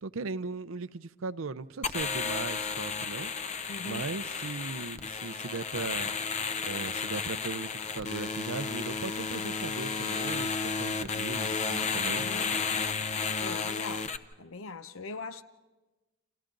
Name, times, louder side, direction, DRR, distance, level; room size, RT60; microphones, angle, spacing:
voice 1, 0.0-3.3 3.9-6.1 6.6-12.3, right 4 dB, 75° right, 0.6 m, -38 dB
sound 1, 1.8-14.2, left 5 dB, 35° left, 0.7 m, -32 dB
voice 2, 3.7-4.1 12.0-12.6 13.4-15.4, left 3 dB, 75° left, 0.9 m, -41 dB
29.5 x 28.0 x 3.9 m
head